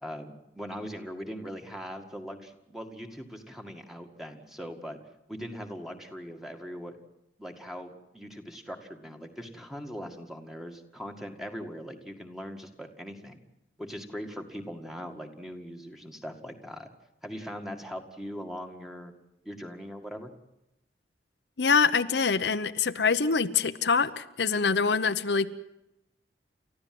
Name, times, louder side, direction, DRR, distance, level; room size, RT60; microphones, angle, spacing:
voice 1, 0.0-5.0 5.3-7.0 7.4-13.4 13.8-16.9 17.2-19.1 19.4-20.3, equal, ahead, 4 dB, 2.0 m, -40 dB
voice 2, 21.6-25.5, left 5 dB, 80° left, 10 dB, 0.9 m, -25 dB
30.0 x 14.5 x 7.8 m, 0.89 s
head